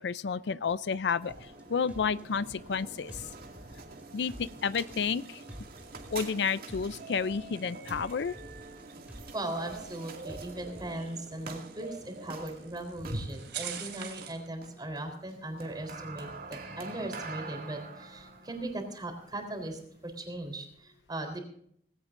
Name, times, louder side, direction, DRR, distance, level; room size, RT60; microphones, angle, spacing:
voice 1, 0.0-3.3 4.1-5.4 6.1-8.4, left 6 dB, 70° left, 16 dB, 0.5 m, -31 dB
sound 1, 1.1-20.2, right 2 dB, 55° right, 2.3 m, -45 dB
sound 2, 1.3-1.6 1.9-2.8 3.1-4.0 4.3-5.2 5.5-6.4 6.7-7.6 7.9-8.8 9.1-10.0 10.3-10.9, equal, 10° right, 2.5 m, -48 dB
sound 3, 3.8-14.5, right 9 dB, 80° right, 3.2 m, -49 dB
voice 2, 9.3-21.4, right 1 dB, 25° right, 4 dB, 3.8 m, -38 dB
19.0 x 17.0 x 2.6 m, 0.65 s
head